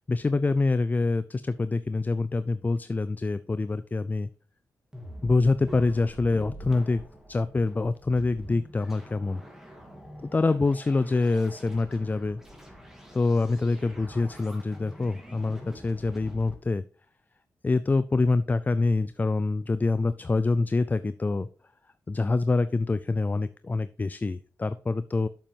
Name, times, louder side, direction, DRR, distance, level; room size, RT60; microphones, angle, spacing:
voice 1, 0.1-4.3 5.2-7.0 7.3-9.4 10.3-12.4 13.1-16.8 17.6-21.5 22.1-25.3, left 3 dB, 25° left, 13 dB, 0.4 m, -26 dB
sound 1, 4.9-16.5, equal, 5° right, 2.7 m, -45 dB
7.7 x 7.2 x 3.4 m, 0.40 s
cardioid pair, 65°, 6 cm